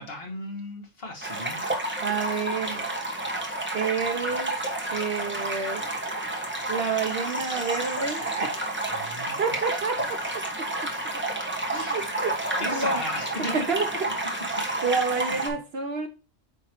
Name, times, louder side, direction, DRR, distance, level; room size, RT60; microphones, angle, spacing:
voice 1, 0.0-1.6 8.9-9.4 11.7-12.1 12.6-13.7 15.1-15.4, left 1 dB, 50° left, 1.6 m, -36 dB
sound 1, 1.2-15.5, right 1 dB, 10° right, 1.2 m, -30 dB
voice 2, 2.0-2.8 3.7-4.6 4.9-5.8 6.7-8.8 9.4-10.2 10.6-10.7 11.1-11.2 11.7-13.0 13.5-13.9 14.5-16.1, right 5 dB, 55° right, 1.0 m, -29 dB
8.8 x 3.1 x 4.4 m
omnidirectional pair, 1.3 m